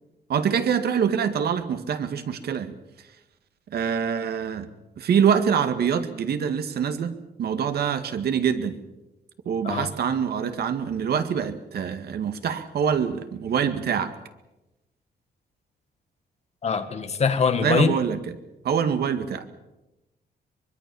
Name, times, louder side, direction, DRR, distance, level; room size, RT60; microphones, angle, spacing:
voice 1, 0.3-2.7 3.7-4.7 5.0-8.8 9.5-14.1 17.6-18.2 18.6-19.5, right 7 dB, 75° right, 8 dB, 2.0 m, -25 dB
voice 2, 16.6-18.0, left 5 dB, 40° left, 8 dB, 2.0 m, -23 dB
24.0 x 22.0 x 7.2 m, 0.98 s
wide cardioid pair, 170°, 17 cm